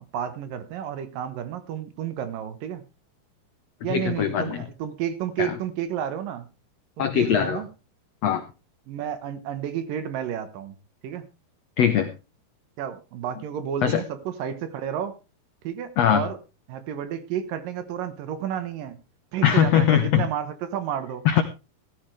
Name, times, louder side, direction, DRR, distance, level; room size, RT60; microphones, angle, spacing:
voice 1, 0.0-2.9 3.8-6.5 7.0-7.7 8.9-10.7 11.0-11.3 12.8-15.2 15.6-16.4 16.7-19.0 19.3-21.2, right 9 dB, 70° right, 12 dB, 2.7 m, -31 dB
voice 2, 3.9-4.6 5.4-5.5 7.0-7.6 8.2-8.4 11.8-12.1 13.8-14.0 16.0-16.2 19.4-20.3 21.2-21.4, left 9 dB, 80° left, 9 dB, 1.5 m, -21 dB
15.5 x 13.5 x 3.3 m, 0.29 s
omnidirectional pair, 4.4 m